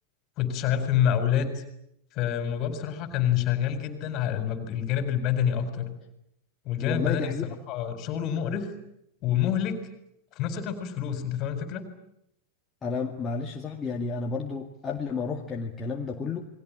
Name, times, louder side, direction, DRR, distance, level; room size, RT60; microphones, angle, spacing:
voice 1, 0.4-1.6 2.1-5.9 6.6-7.4 7.7-8.7 9.2-9.8 10.3-11.8, left 9 dB, 40° left, 10 dB, 4.4 m, -27 dB
voice 2, 6.8-7.5 12.8-16.5, left 4 dB, 20° left, 1 dB, 2.2 m, -31 dB
28.5 x 21.5 x 8.7 m, 0.79 s
figure-of-eight pair, 90°, 0 cm